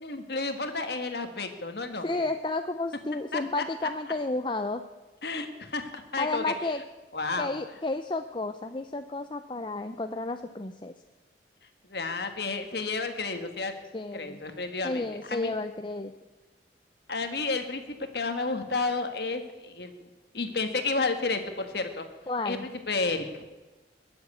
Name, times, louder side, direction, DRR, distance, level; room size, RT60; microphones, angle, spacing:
voice 1, 0.0-2.1 3.3-3.4 5.2-6.5 7.1-7.5 11.9-13.8 14.1-15.5 17.1-19.9 20.3-22.1 22.4-22.6 22.9-23.5, left 3 dB, 60° left, 7 dB, 1.6 m, -31 dB
voice 2, 2.0-4.8 6.2-6.8 7.4-10.9 13.9-14.4 14.8-16.1 22.3-22.7, left 2 dB, 25° left, 8 dB, 0.5 m, -32 dB
21.5 x 7.9 x 8.5 m, 1.2 s
head